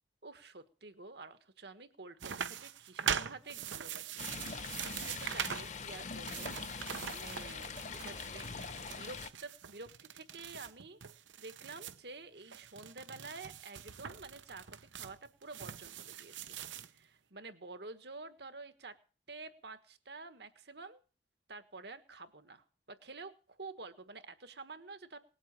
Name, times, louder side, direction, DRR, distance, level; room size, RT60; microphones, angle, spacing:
voice 1, 0.2-4.3 4.8-8.7 8.9-11.0 11.4-16.6 16.9-19.0 19.3-21.0 21.5-25.2, right 3 dB, 60° right, 11 dB, 1.4 m, -50 dB
sound 1, 2.2-5.7 6.1-12.0 12.4-16.9, right 8 dB, 85° right, 0.9 m, -42 dB
Stream, 4.2-9.3, left 5 dB, 40° left, 0.9 m, -43 dB
19.0 x 8.2 x 7.4 m, 0.39 s
head